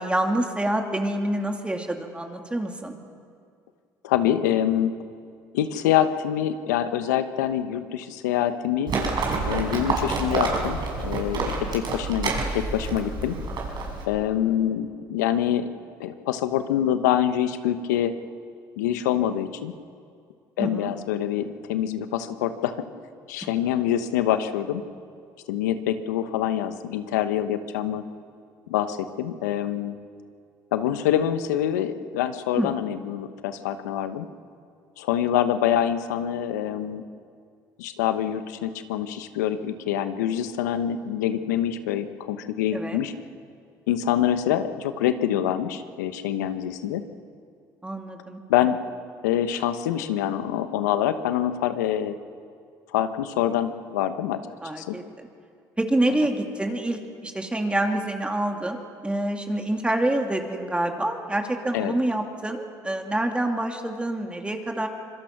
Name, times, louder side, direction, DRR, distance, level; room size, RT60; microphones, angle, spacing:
voice 1, 0.0-3.0 11.5-11.7 20.6-20.9 32.6-32.7 42.7-43.0 47.8-48.4 54.6-55.0 55.8-64.9, right 1 dB, 10° right, 3 dB, 2.7 m, -27 dB
voice 2, 4.0-4.9 5.5-8.9 9.5-13.4 14.1-15.7 16.0-18.1 18.8-19.7 20.6-22.7 23.3-24.8 25.5-28.0 28.7-30.0 30.7-34.3 35.0-37.0 37.8-43.1 43.9-47.0 48.5-48.8 49.2-52.2 52.9-54.4 54.8-55.0 61.7-61.9, left 10 dB, 90° left, 10 dB, 1.1 m, -25 dB
Livestock farm animals working animals, 8.9-14.0, right 3 dB, 55° right, 6.2 m, -28 dB
25.5 x 22.0 x 6.0 m, 2.3 s
supercardioid pair, 70°, 9 cm